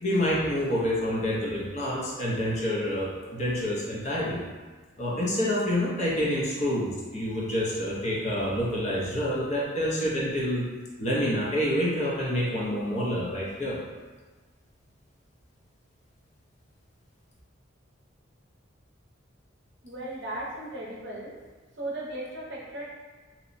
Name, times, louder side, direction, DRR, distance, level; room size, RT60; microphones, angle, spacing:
voice 1, 0.0-4.4 5.0-10.7 11.0-13.8, equal, 35° left, -5 dB, 0.5 m, -27 dB
voice 2, 19.8-21.3 21.7-22.9, right 1 dB, 55° right, -5 dB, 0.6 m, -36 dB
2.8 x 2.0 x 2.5 m, 1.3 s
head